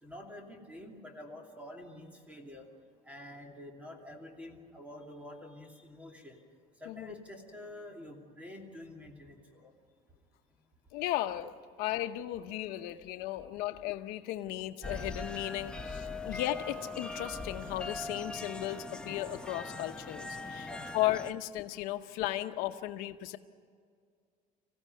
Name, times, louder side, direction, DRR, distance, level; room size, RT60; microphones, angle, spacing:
voice 1, 0.0-2.7 3.0-6.4 6.8-9.7 19.6-19.9 20.6-20.8, left 1 dB, 10° right, 2 dB, 2.7 m, -48 dB
voice 2, 10.9-23.4, left 14 dB, 80° left, 8 dB, 0.9 m, -35 dB
sound 1, 14.8-21.3, left 2 dB, 5° left, 0.8 m, -41 dB
26.0 x 15.5 x 9.5 m, 2.1 s
cardioid pair, 165°, 15 cm